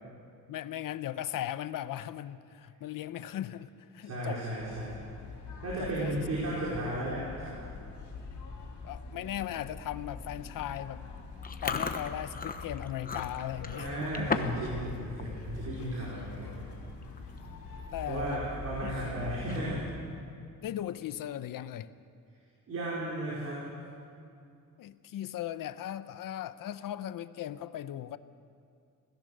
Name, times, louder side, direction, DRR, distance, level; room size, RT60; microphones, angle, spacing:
voice 1, 0.5-4.4 5.8-6.1 8.8-11.1 11.6-14.3 17.9-18.4 18.8-19.0 20.6-21.9 24.8-28.2, left 11 dB, 85° left, 14 dB, 0.8 m, -38 dB
voice 2, 4.0-5.0 5.6-7.6 13.8-16.5 18.1-19.9 22.7-23.6, right 1 dB, 50° right, -6 dB, 4.9 m, -34 dB
sound 1, 4.6-20.0, left 4 dB, 60° left, 4.3 m, -44 dB
Chewing mastication, 11.4-14.7 15.0-15.3 15.7-16.0 16.7-16.8 17.0-17.4 17.8-17.9 19.3-19.9, left 5 dB, 25° left, 1.0 m, -35 dB
26.0 x 17.5 x 6.6 m, 2.4 s
wide cardioid pair, 170°, 32 cm